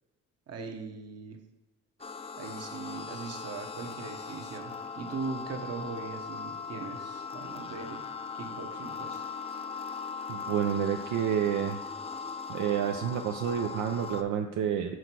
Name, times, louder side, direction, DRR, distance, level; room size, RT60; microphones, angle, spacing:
voice 1, 0.5-1.4 2.4-8.0 8.3-9.2 9.5-9.6, right 4 dB, 55° right, 4 dB, 1.2 m, -40 dB
sound 1, 2.0-14.2, left 5 dB, 20° left, 0.4 m, -39 dB
voice 2, 10.3-11.8 12.5-15.0, right 9 dB, 80° right, 4 dB, 0.6 m, -29 dB
6.4 x 4.0 x 6.1 m, 1.1 s
cardioid pair, 90°, 30 cm